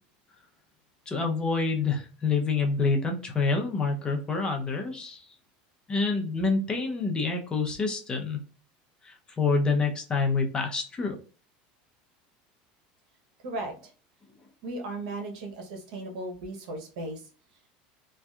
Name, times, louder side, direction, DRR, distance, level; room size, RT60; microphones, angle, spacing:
voice 1, 1.1-5.2 5.9-8.4 9.0-11.2, left 4 dB, 20° left, 2 dB, 0.6 m, -27 dB
voice 2, 14.6-17.2, right 2 dB, 80° right, 3 dB, 0.8 m, -36 dB
2.7 x 2.2 x 2.3 m, 0.38 s
supercardioid pair, 125°, 4 cm